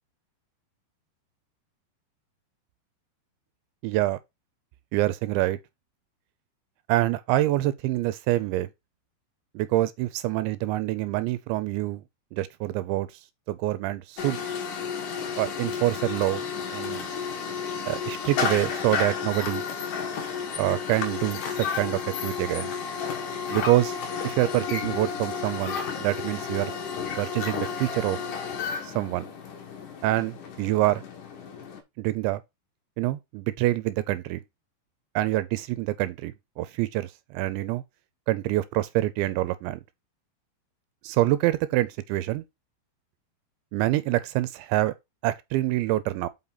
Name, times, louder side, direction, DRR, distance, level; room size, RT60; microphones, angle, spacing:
voice 1, 3.8-4.2 4.9-5.6 6.9-8.7 9.6-12.0 12.3-13.1 13.5-14.4 15.4-16.4 16.7-17.1 17.9-19.6 20.6-22.7 23.5-24.0 24.2-26.7 27.2-28.2 28.8-29.3 30.0-31.0 32.0-32.4 33.0-34.4 35.2-37.8 38.3-39.8 41.0-42.4 43.7-44.9 45.2-46.3, right 16 dB, 85° right, 2.9 m, -26 dB
sound 1, 14.2-31.8, left 6 dB, 60° left, 2.4 m, -32 dB
7.1 x 5.5 x 4.0 m
omnidirectional pair, 5.3 m